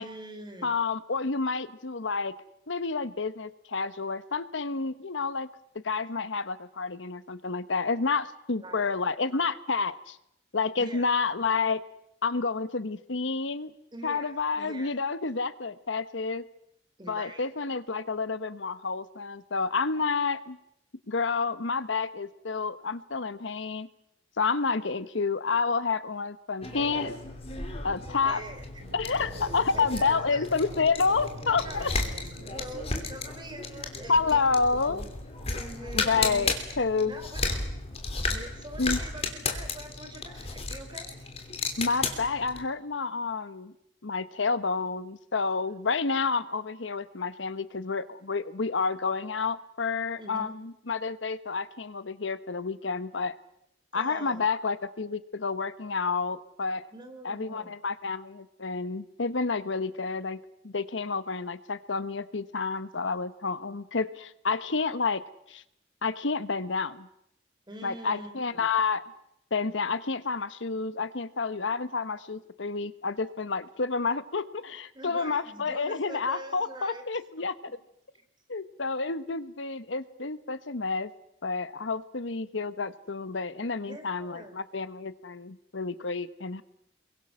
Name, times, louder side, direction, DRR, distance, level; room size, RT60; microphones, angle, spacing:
voice 1, 0.0-0.8 8.6-8.9 10.8-11.1 13.9-14.9 17.0-17.5 28.2-28.6 29.7-30.5 31.5-32.0 32.3-35.1 35.5-36.5 37.0-37.4 38.3-41.3 50.2-50.5 53.9-54.5 56.9-57.7 67.7-68.7 74.9-77.0 83.9-84.6, right 1 dB, 25° right, 6 dB, 3.1 m, -44 dB
voice 2, 0.6-2.3 2.7-5.5 5.8-10.2 10.5-11.8 12.2-13.7 14.0-16.4 17.1-20.6 21.1-23.9 24.4-27.1 27.8-28.4 28.9-31.9 34.1-35.0 35.9-37.1 38.8-39.0 41.8-43.7 44.0-53.3 53.9-56.9 57.2-60.4 60.6-65.2 65.5-65.6 66.0-67.1 67.8-69.0 69.5-77.5 78.5-81.1 81.4-86.6, left 4 dB, 75° left, 14 dB, 1.0 m, -29 dB
sound 1, 26.6-42.7, left 3 dB, 35° left, 3.1 m, -34 dB
sound 2, 28.8-33.1, equal, 65° right, 4.1 m, -45 dB
29.5 x 23.0 x 6.4 m, 0.77 s
head